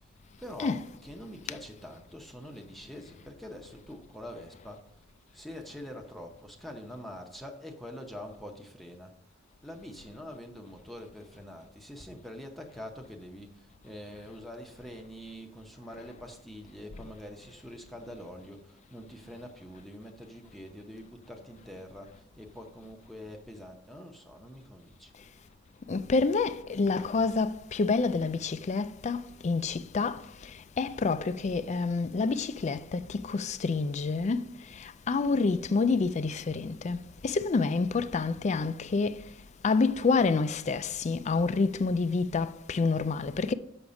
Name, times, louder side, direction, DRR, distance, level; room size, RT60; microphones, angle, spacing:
voice 1, 0.4-9.1 9.6-25.1, equal, ahead, 0.7 m, -45 dB
voice 2, 25.9-30.2 30.8-34.5 34.8-37.0 37.2-39.2 39.6-43.5, left 4 dB, 35° left, 0.4 m, -28 dB
7.0 x 5.9 x 5.2 m
head